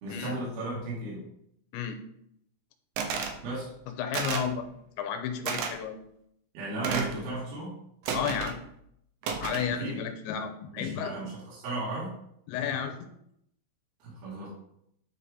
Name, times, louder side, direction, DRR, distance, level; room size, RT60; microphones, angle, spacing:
voice 1, 0.0-1.3 3.4-3.7 6.5-7.8 9.8-10.0 10.7-12.2 14.0-14.5, right 2 dB, 65° right, -7 dB, 3.4 m, -35 dB
sound 1, 3.0-3.4 4.1-4.5 5.5-5.7 6.8-7.2 8.1-8.6 9.2-9.7, right 5 dB, 85° right, 2.0 m, -31 dB
voice 2, 3.9-4.6 5.0-6.0 8.1-8.6 9.4-11.2 12.5-13.0, left 8 dB, 90° left, 6 dB, 3.0 m, -32 dB
9.8 x 4.2 x 3.6 m, 0.73 s
omnidirectional pair, 5.1 m